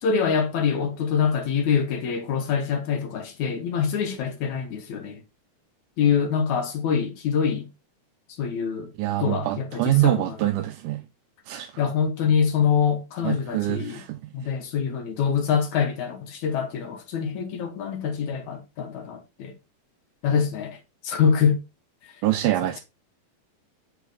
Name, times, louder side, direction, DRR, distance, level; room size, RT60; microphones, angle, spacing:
voice 1, 0.0-5.2 6.0-7.7 8.4-8.9 9.2-10.4 11.8-14.0 14.3-19.5 20.2-20.8 21.0-21.6, left 7 dB, 70° left, 2.5 m, -25 dB
voice 2, 9.0-11.0 11.5-11.7 13.2-14.2 22.2-22.8, right 15 dB, 80° right, 2.1 m, -25 dB
9.4 x 3.6 x 5.0 m
omnidirectional pair, 3.7 m